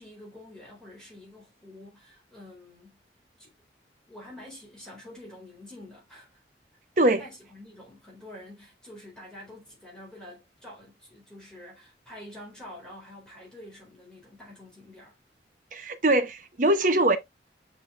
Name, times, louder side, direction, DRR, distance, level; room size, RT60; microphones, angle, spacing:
voice 1, 0.0-3.0 3.4-3.5 4.1-6.4 7.2-15.2, left 1 dB, 5° left, 3.9 m, -47 dB
voice 2, 15.7-17.2, right 1 dB, 45° right, 0.9 m, -22 dB
8.8 x 5.0 x 2.5 m
head